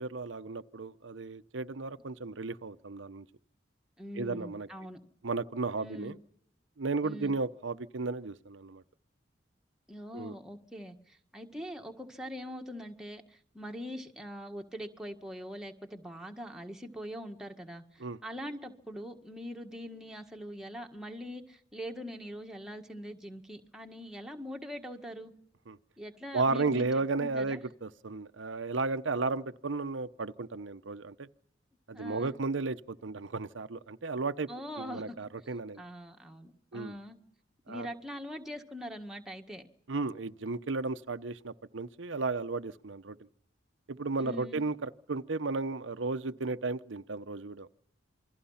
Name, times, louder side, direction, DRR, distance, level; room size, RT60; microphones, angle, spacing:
voice 1, 0.0-3.2 4.2-4.7 5.2-6.2 6.8-8.8 10.1-10.3 18.0-18.2 25.7-25.8 26.3-31.3 31.9-34.5 34.8-35.8 36.7-36.9 37.7-37.9 39.9-43.2 43.9-47.7, right 3 dB, 90° right, 0.8 m, -34 dB
voice 2, 4.0-5.0 5.8-6.1 7.0-7.3 9.9-25.3 26.0-26.9 27.2-27.6 31.9-32.3 34.5-35.2 35.5-37.2 37.7-39.7 44.2-44.6, equal, 5° right, 1.7 m, -43 dB
28.0 x 22.0 x 5.7 m
head